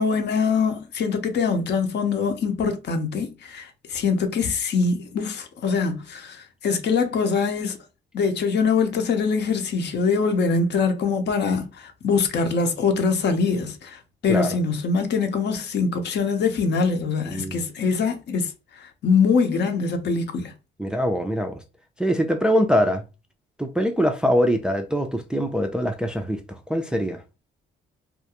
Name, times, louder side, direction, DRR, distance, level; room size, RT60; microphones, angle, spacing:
voice 1, 0.0-7.8 8.1-18.5 18.8-20.5, left 5 dB, 60° left, 0.7 m, -23 dB
voice 2, 17.3-17.6 20.8-21.6 22.0-23.0 23.6-27.2, equal, 5° right, 0.3 m, -23 dB
2.4 x 2.2 x 2.8 m
cardioid pair, 90°, 20 cm